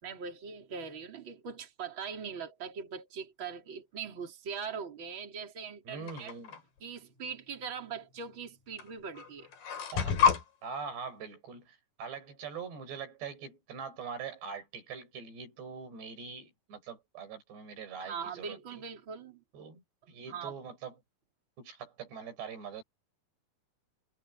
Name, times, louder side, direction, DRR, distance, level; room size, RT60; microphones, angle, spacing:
voice 1, 0.0-6.3 6.8-9.5 18.0-19.4 20.3-20.5, right 6 dB, 30° right, 4.2 m, -41 dB
voice 2, 5.8-6.6 9.9-10.2 10.6-18.8 19.5-21.0 21.6-22.8, right 6 dB, 90° right, 8.2 m, -43 dB
sound 1, 6.1-6.6 7.7-7.8 8.8-8.9 9.1-10.4, left 7 dB, 60° left, 4.6 m, -28 dB
omnidirectional pair, 4.7 m